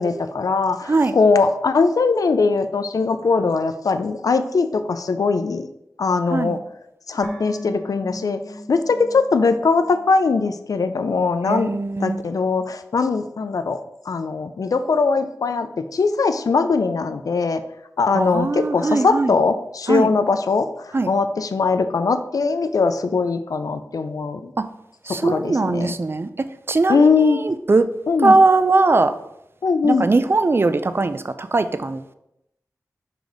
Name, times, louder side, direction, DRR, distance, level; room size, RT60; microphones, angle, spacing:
voice 1, 0.0-5.7 6.0-6.6 7.1-8.4 8.7-11.7 12.0-13.8 14.1-17.6 18.0-20.7 21.1-24.5 25.2-25.9 26.9-27.4 28.1-28.4 29.6-30.1, left 4 dB, 70° left, 9 dB, 0.5 m, -20 dB
sound 1, 7.2-10.5 10.8-10.9, equal, 15° left, 1.4 m, -37 dB
voice 2, 11.5-12.2 18.1-19.3 19.9-20.1 20.9-21.1 25.1-26.3 26.7-27.1 27.4-27.8 28.2-29.1 29.8-32.1, right 3 dB, 40° right, 11 dB, 0.5 m, -19 dB
4.9 x 3.8 x 5.1 m, 0.81 s
cardioid pair, 55°, 6 cm